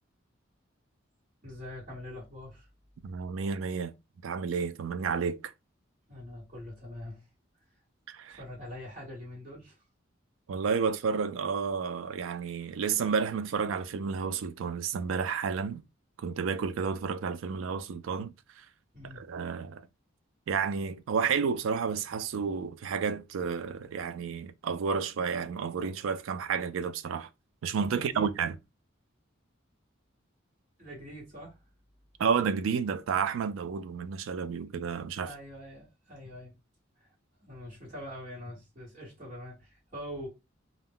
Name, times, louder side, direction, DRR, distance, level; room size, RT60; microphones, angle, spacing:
voice 1, 1.4-2.7 6.1-7.3 8.3-9.8 18.9-19.2 27.8-28.4 30.8-31.6 35.2-36.5 37.0-37.1 37.4-40.3, equal, 35° right, 1.3 m, -44 dB
voice 2, 3.0-3.9 4.2-5.5 8.1-8.4 10.5-15.8 16.2-18.3 19.1-19.9 20.5-27.3 27.6-28.6 32.2-35.3, right 6 dB, 80° right, 0.3 m, -31 dB
2.4 x 2.1 x 3.5 m
head